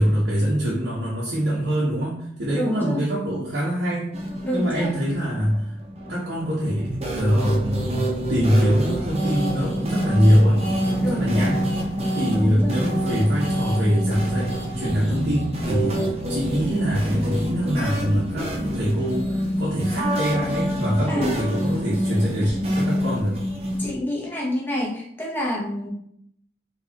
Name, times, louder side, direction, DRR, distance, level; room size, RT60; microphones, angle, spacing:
voice 1, 0.0-4.1 4.5-5.7 6.1-11.6 12.1-23.4, equal, 70° right, -8 dB, 1.2 m, -23 dB
voice 2, 2.5-3.0 4.4-4.9 11.0-11.5 12.3-12.8 21.1-21.3 23.8-25.9, left 1 dB, 10° left, -4 dB, 1.0 m, -28 dB
sound 1, 4.1-23.9, equal, 35° right, 0.7 m, -27 dB
4.4 x 3.3 x 2.9 m, 0.71 s
head